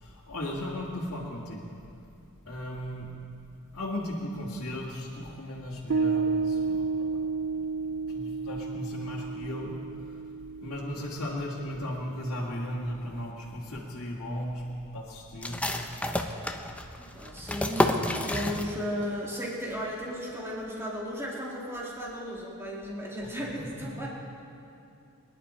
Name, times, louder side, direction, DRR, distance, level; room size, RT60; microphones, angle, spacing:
voice 1, 0.0-1.6 2.5-3.1 3.7-6.9 8.1-9.7 10.6-14.6 14.9-15.7, left 1 dB, 65° left, -6 dB, 2.2 m, -36 dB
Piano, 5.9-12.7, right 4 dB, 60° right, 0.5 m, -32 dB
sound 1, 15.4-19.1 19.3-19.4 19.9-20.3, left 1 dB, 5° left, 0.7 m, -30 dB
voice 2, 17.0-18.0 18.3-24.1, equal, 10° right, -5 dB, 2.9 m, -35 dB
24.0 x 11.0 x 4.4 m, 2.6 s
head